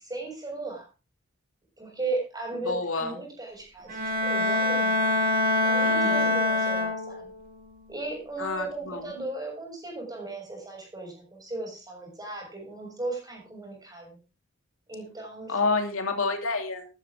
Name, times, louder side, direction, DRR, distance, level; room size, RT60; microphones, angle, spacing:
voice 1, 0.1-0.9 1.8-5.3 5.6-7.3 7.9-14.2 14.9-15.7, right 2 dB, 20° right, 0 dB, 7.1 m, -36 dB
voice 2, 2.6-3.2 5.8-6.3 8.4-9.1 15.5-16.9, left 3 dB, 75° left, 5 dB, 2.7 m, -29 dB
Bowed string instrument, 3.9-7.4, left 2 dB, 45° right, 2.6 m, -25 dB
13.5 x 12.5 x 3.7 m, 0.31 s
head